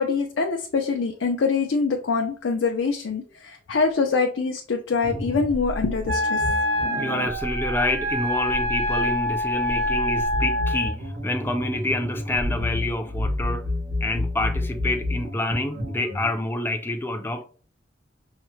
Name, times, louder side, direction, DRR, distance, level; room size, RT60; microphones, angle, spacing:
voice 1, 0.0-6.4, left 4 dB, 80° left, 0.5 m, -24 dB
sound 1, 5.0-16.3, left 1 dB, 75° right, 1.7 m, -31 dB
Wind instrument woodwind instrument, 6.1-10.9, equal, 60° right, 0.5 m, -26 dB
voice 2, 7.0-11.0 11.2-13.6 14.0-17.4, left 1 dB, 10° left, 0.4 m, -27 dB
5.6 x 2.1 x 3.1 m
head